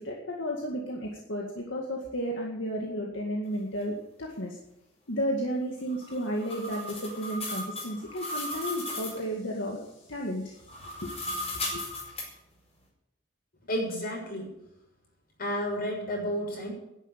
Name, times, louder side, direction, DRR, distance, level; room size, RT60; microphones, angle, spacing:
voice 1, 0.0-4.6 5.1-9.8 10.1-11.4 11.7-11.8, equal, 75° left, -1 dB, 2.1 m, -33 dB
sound 1, 5.9-9.2 10.6-12.3, left 1 dB, 35° left, 4.8 m, -36 dB
voice 2, 13.7-14.5 15.4-16.7, equal, 50° left, -1 dB, 6.5 m, -31 dB
11.0 x 10.5 x 9.0 m, 0.86 s
head